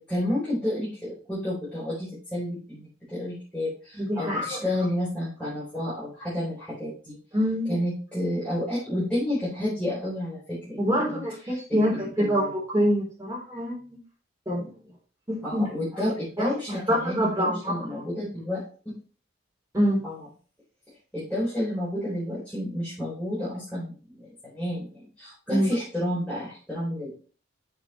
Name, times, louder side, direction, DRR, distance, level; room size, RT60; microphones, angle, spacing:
voice 1, 0.0-7.2 7.7-11.2 11.5-12.5 15.4-18.6 20.0-20.2 21.1-27.1, left 1 dB, 5° left, -10 dB, 4.2 m, -30 dB
voice 2, 3.9-4.7 7.3-7.7 10.8-14.0 14.5-14.7 15.3-15.7 16.4-16.5 16.9-17.8 19.7-20.0 25.5-25.7, equal, 15° right, -4 dB, 3.6 m, -25 dB
7.5 x 7.2 x 3.1 m, 0.38 s
head